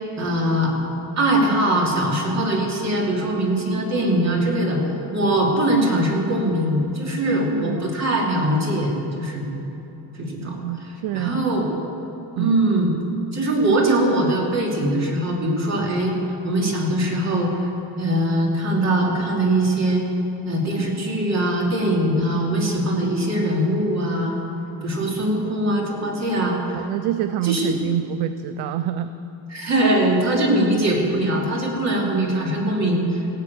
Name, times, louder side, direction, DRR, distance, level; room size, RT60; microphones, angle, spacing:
voice 1, 0.2-0.7 1.2-4.8 5.1-9.5 10.1-10.6 11.1-11.7 12.4-12.9 13.3-17.7 18.0-20.0 20.4-24.4 24.8-26.8 27.4-27.8 29.5-33.3, right 1 dB, 40° right, -2 dB, 3.0 m, -21 dB
voice 2, 7.3-7.9 10.2-11.5 12.4-12.6 26.7-29.1, right 10 dB, 65° right, 11 dB, 0.6 m, -27 dB
17.0 x 6.8 x 8.3 m, 3.0 s
cardioid pair, 130°, 43 cm